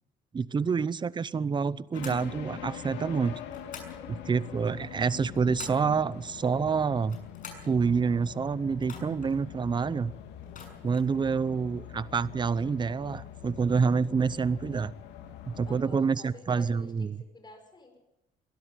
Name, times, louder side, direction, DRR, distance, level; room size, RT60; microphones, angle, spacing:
voice 1, 0.3-3.4 4.1-7.2 7.7-10.1 10.8-14.9 15.5-17.2, right 5 dB, 25° right, 19 dB, 0.7 m, -27 dB
sound 1, 1.9-15.8, left 10 dB, 85° left, 2.4 m, -44 dB
sound 2, 1.9-2.3 3.5-4.0 5.0-5.9 7.0-7.7 8.8-9.3 10.4-11.1, left 5 dB, 50° left, 6.6 m, -47 dB
voice 2, 15.7-18.0, left 2 dB, 25° left, 6 dB, 5.7 m, -50 dB
22.5 x 12.5 x 9.4 m, 0.92 s
cardioid pair, 105°, 18 cm